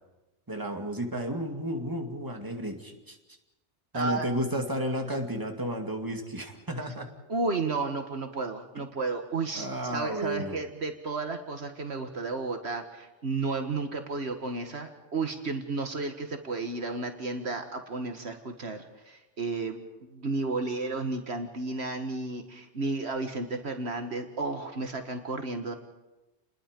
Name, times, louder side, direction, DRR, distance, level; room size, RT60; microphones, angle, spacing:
voice 1, 0.5-3.2 3.9-7.1 8.8-9.0 9.5-10.6, equal, 20° right, 3 dB, 2.3 m, -32 dB
voice 2, 3.9-4.3 7.3-25.7, right 3 dB, 65° right, 6 dB, 1.7 m, -33 dB
29.5 x 21.0 x 5.2 m, 1.1 s
omnidirectional pair, 1.2 m